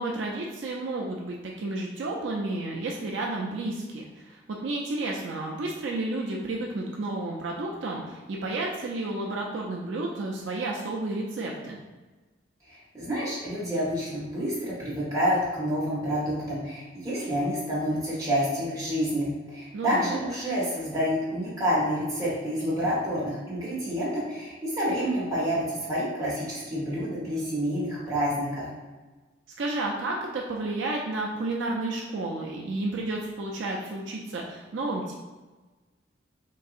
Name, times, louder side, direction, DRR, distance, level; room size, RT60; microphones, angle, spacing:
voice 1, 0.0-11.8 19.7-20.1 29.6-35.1, right 2 dB, 75° right, -2 dB, 0.4 m, -31 dB
voice 2, 12.7-28.6, equal, 20° right, -8 dB, 1.2 m, -28 dB
3.8 x 2.7 x 2.4 m, 1.2 s
head